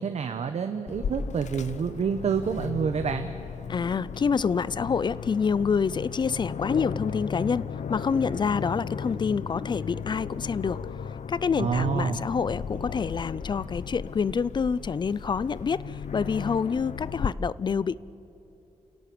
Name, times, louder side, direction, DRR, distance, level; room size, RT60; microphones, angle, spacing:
voice 1, 0.0-3.3 11.6-12.3, right 6 dB, 60° right, 8 dB, 1.0 m, -28 dB
Aircraft, 0.9-17.3, left 6 dB, 65° left, 0.9 m, -35 dB
voice 2, 3.7-10.8 11.3-17.9, left 6 dB, 35° left, 20 dB, 0.4 m, -27 dB
29.0 x 17.0 x 8.5 m, 3.0 s
wide cardioid pair, 160°, 13 cm